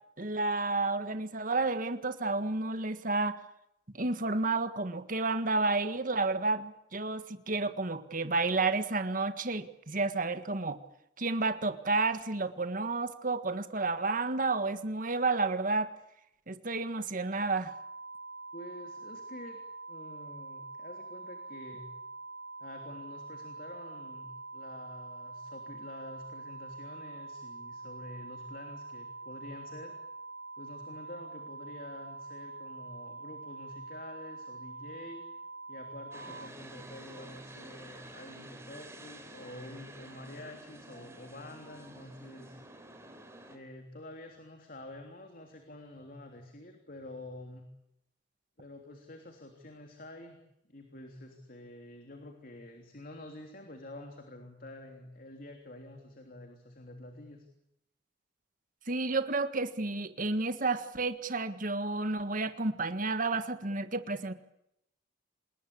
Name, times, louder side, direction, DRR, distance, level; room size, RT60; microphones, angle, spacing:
voice 1, 0.2-3.4 3.9-10.8 11.2-15.9 16.5-17.7 58.9-64.3, right 3 dB, 45° right, 10 dB, 1.6 m, -31 dB
sound 1, 17.7-36.5, right 3 dB, 70° right, 1.0 m, -45 dB
voice 2, 18.5-19.6 19.9-21.9 22.6-24.3 24.5-30.0 30.6-35.2 35.7-42.6 43.5-47.7 48.6-50.4 50.7-57.4, left 1 dB, 50° left, 4 dB, 3.3 m, -48 dB
sound 2, 36.1-43.6, right 2 dB, 15° right, 3.8 m, -50 dB
27.0 x 21.0 x 8.6 m, 0.81 s
head